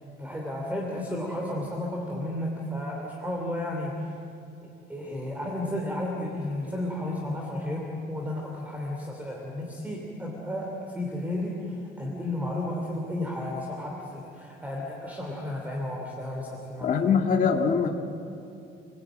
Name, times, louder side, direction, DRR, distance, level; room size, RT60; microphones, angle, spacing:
voice 1, 0.2-4.1 4.6-17.0, left 1 dB, 5° right, -1 dB, 3.0 m, -33 dB
voice 2, 16.8-17.9, left 6 dB, 40° left, 2 dB, 2.0 m, -23 dB
29.0 x 20.0 x 9.2 m, 2.7 s
cardioid pair, 170°, 21 cm